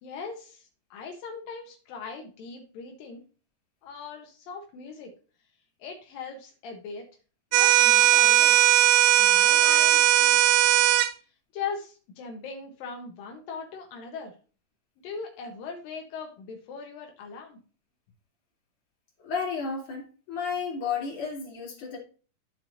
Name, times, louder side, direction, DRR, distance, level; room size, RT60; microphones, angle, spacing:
voice 1, 0.0-3.2 3.8-5.1 5.8-7.1 7.5-8.6 9.2-10.7 11.5-14.3 15.0-17.6, left 5 dB, 85° left, 2 dB, 2.8 m, -40 dB
sound 1, 7.5-11.1, right 14 dB, 85° right, 2.2 m, -19 dB
voice 2, 19.2-22.0, left 6 dB, 40° left, -3 dB, 3.5 m, -32 dB
13.5 x 4.6 x 2.6 m, 0.37 s
omnidirectional pair, 4.0 m